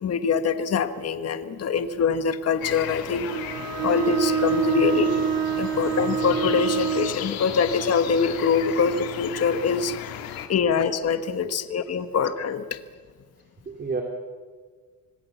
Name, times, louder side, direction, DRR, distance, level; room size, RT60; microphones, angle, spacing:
voice 1, 0.0-3.4 3.8-10.0 10.5-12.8, left 5 dB, 45° left, 10 dB, 1.5 m, -24 dB
sound 1, 2.6-10.5, left 9 dB, 85° left, 2.2 m, -35 dB
Bowed string instrument, 3.3-7.2, right 8 dB, 65° right, 4.9 m, -26 dB
voice 2, 13.7-14.0, right 4 dB, 30° right, 2 dB, 2.8 m, -33 dB
26.5 x 19.5 x 7.2 m, 1.5 s
cardioid pair, 125°, 35 cm